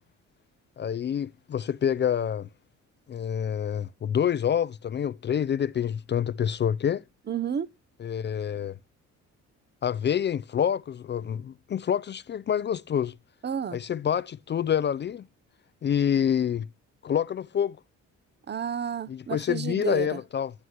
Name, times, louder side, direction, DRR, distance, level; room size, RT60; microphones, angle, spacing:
voice 1, 0.8-2.5 3.1-7.0 8.0-8.8 9.8-13.2 13.7-15.3 15.8-16.7 17.0-17.8 19.1-20.5, left 9 dB, 35° left, 0.4 m, -27 dB
voice 2, 7.3-7.7 13.4-13.8 18.5-20.2, right 8 dB, 35° right, 0.7 m, -31 dB
11.0 x 7.9 x 2.9 m
cardioid pair, 90°, 30 cm